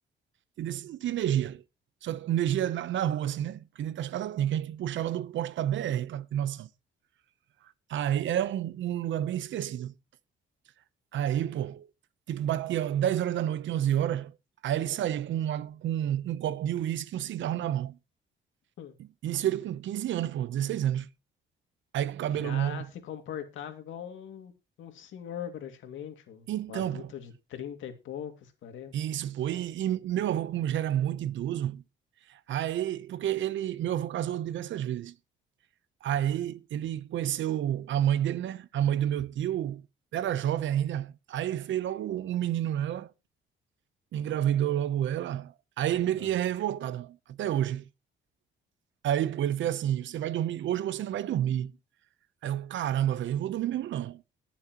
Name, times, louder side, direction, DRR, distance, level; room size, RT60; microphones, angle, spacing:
voice 1, 0.6-1.6 2.0-6.7 7.9-9.9 11.1-11.9 12.3-14.3 14.6-18.0 19.2-21.1 21.9-22.9 26.5-27.1 28.9-31.8 32.3-35.1 36.0-39.8 40.1-43.1 44.1-47.8 49.0-51.7 52.4-54.2, right 11 dB, 70° right, 0.9 m, -29 dB
voice 2, 22.3-24.5 24.8-28.9 46.2-46.3, left 9 dB, 80° left, 2.4 m, -41 dB
21.5 x 7.2 x 3.0 m
cardioid pair, 90°, 20 cm